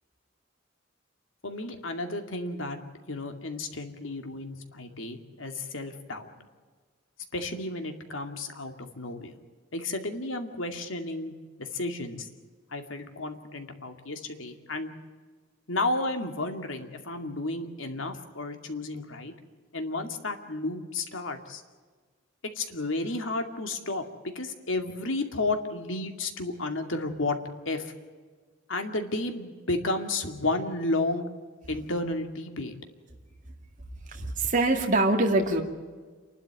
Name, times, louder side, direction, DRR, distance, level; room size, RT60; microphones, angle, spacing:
voice 1, 1.4-2.8 3.1-6.5 7.3-9.4 9.7-11.3 11.6-12.3 12.7-14.9 15.7-19.3 19.7-21.6 22.6-27.4 27.7-27.9 28.7-31.3 31.7-32.7, left 2 dB, 80° left, 6 dB, 2.4 m, -32 dB
voice 2, 34.1-35.6, right 2 dB, 45° right, 2 dB, 2.3 m, -24 dB
28.0 x 12.0 x 9.2 m, 1.5 s
head